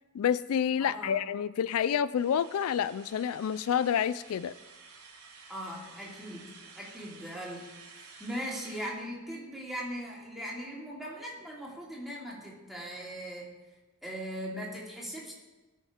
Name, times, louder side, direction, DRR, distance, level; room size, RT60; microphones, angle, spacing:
voice 1, 0.1-4.5, left 8 dB, 80° left, 17 dB, 0.3 m, -28 dB
voice 2, 0.8-1.2 5.5-13.5 14.0-15.3, equal, ahead, -4 dB, 2.7 m, -40 dB
sound 1, 2.1-8.9, right 4 dB, 85° right, 3.6 m, -52 dB
18.5 x 6.4 x 5.0 m, 1.2 s
head